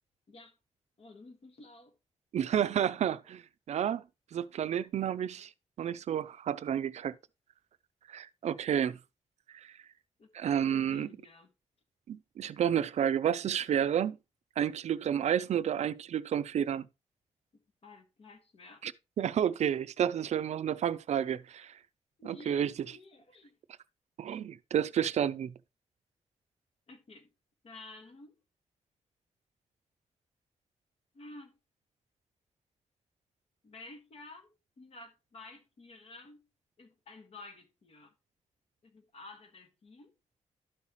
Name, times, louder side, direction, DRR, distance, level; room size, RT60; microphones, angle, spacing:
voice 1, 1.0-1.9 10.2-10.3 10.6-11.5 17.5-18.8 20.4-20.5 22.2-23.6 26.9-27.3 27.6-28.3 31.1-31.6 33.6-36.4 36.8-38.1 38.8-40.1, left 2 dB, 55° left, 1.7 m, -52 dB
voice 2, 2.3-3.4 3.7-4.0 4.3-5.5 5.8-7.1 8.1-9.0 9.5-9.7 10.3-11.1 12.1-14.2 14.6-16.9 18.8-18.9 19.2-21.7 22.2-22.7 24.2-25.5, right 9 dB, 70° right, 0.4 m, -30 dB
12.5 x 5.6 x 3.0 m
wide cardioid pair, 125°, 12 cm